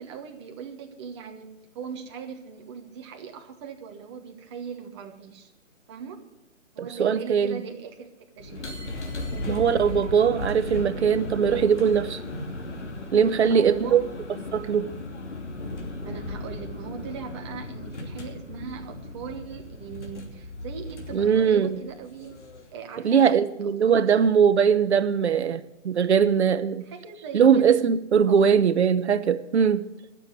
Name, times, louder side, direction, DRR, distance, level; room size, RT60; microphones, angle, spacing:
voice 1, 0.0-5.5 5.9-6.2 6.7-8.8 9.1-9.5 13.4-14.1 16.0-22.4 22.7-24.2 26.8-27.8 28.3-28.5, right 6 dB, 20° right, 1.3 m, -40 dB
voice 2, 6.8-7.6 9.5-12.2 13.1-14.1 14.5-14.9 21.1-21.8 23.0-26.8 27.3-29.9, right 7 dB, 55° right, 1.0 m, -21 dB
sound 1, 8.4-22.8, left 2 dB, 60° left, 2.9 m, -36 dB
13.0 x 7.2 x 9.3 m
hypercardioid pair, 155°, 39 cm